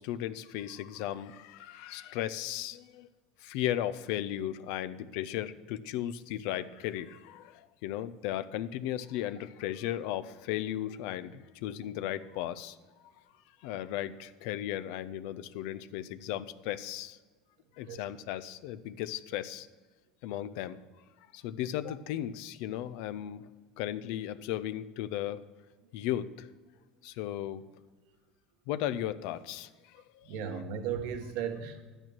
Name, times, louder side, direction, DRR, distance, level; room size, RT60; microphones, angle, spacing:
voice 1, 0.0-3.1 3.4-12.8 13.6-17.2 17.8-19.7 20.2-20.8 21.3-23.4 23.8-25.4 25.9-26.5 27.0-27.6 28.7-30.6, left 12 dB, 70° left, 13 dB, 0.5 m, -36 dB
voice 2, 30.3-31.9, right 7 dB, 70° right, 6 dB, 1.3 m, -35 dB
11.0 x 8.9 x 6.1 m, 1.3 s
supercardioid pair, 110°, 0 cm